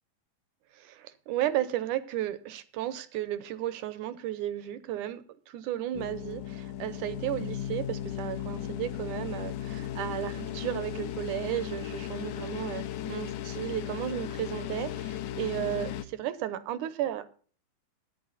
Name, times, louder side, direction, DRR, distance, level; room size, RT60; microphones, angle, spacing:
voice 1, 0.8-17.2, right 12 dB, 75° right, 13 dB, 2.3 m, -34 dB
sound 1, 5.9-16.0, left 11 dB, 75° left, 2.4 m, -36 dB
14.0 x 10.0 x 4.1 m, 0.43 s
omnidirectional pair, 3.8 m